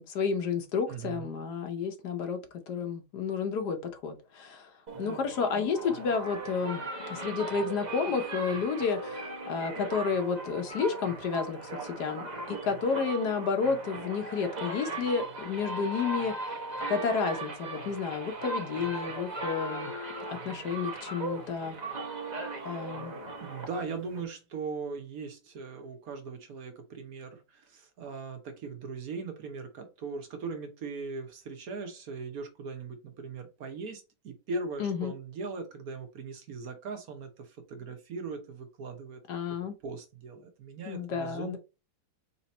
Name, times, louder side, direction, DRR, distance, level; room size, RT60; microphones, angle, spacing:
voice 1, 0.0-4.7 5.0-16.6 16.9-19.9 20.3-21.8 22.6-23.2 34.8-35.1 39.3-39.7 40.9-41.6, left 5 dB, 70° left, 1.4 m, -31 dB
voice 2, 0.9-1.3 4.9-5.2 22.6-22.8 23.4-39.2 39.8-41.6, right 4 dB, 60° right, 1.3 m, -39 dB
sound 1, 4.9-24.2, right 2 dB, 35° right, 0.8 m, -38 dB
4.0 x 3.0 x 4.1 m
omnidirectional pair, 1.9 m